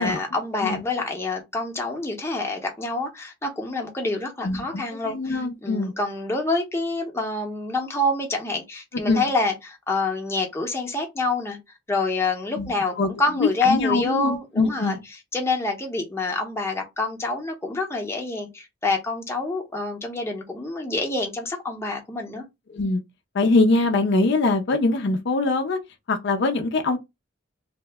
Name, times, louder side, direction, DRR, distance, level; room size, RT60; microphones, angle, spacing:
voice 1, 0.0-11.6 11.9-15.0 15.3-22.4, left 2 dB, 15° left, 0.7 m, -27 dB
voice 2, 4.4-5.9 9.1-9.2 12.6-13.1 13.3-15.0 22.7-23.0 23.3-25.8 26.1-27.0, left 3 dB, 60° left, 0.5 m, -23 dB
2.8 x 2.1 x 3.3 m
head